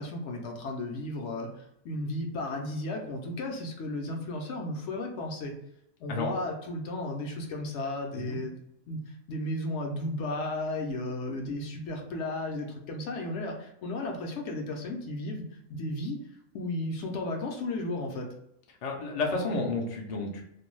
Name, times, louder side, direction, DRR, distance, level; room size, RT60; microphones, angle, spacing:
voice 1, 0.0-5.5 6.0-8.5 8.9-15.4 15.7-16.2 16.5-18.3, left 2 dB, 70° left, 1 dB, 0.8 m, -34 dB
voice 2, 18.8-20.4, left 3 dB, 50° left, 0 dB, 0.5 m, -31 dB
2.5 x 2.2 x 3.1 m, 0.78 s
omnidirectional pair, 1.4 m